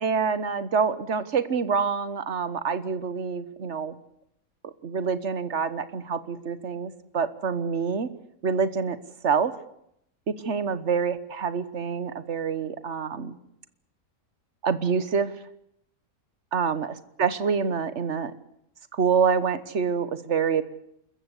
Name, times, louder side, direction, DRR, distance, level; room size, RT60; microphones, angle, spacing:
voice 1, 0.0-4.0 4.8-8.1 8.4-9.0 9.2-9.5 10.3-13.4 14.6-15.3 16.5-16.9 17.2-18.3 18.9-20.6, right 6 dB, 55° right, 14 dB, 1.5 m, -26 dB
28.5 x 14.5 x 8.2 m, 0.75 s
omnidirectional pair, 1.5 m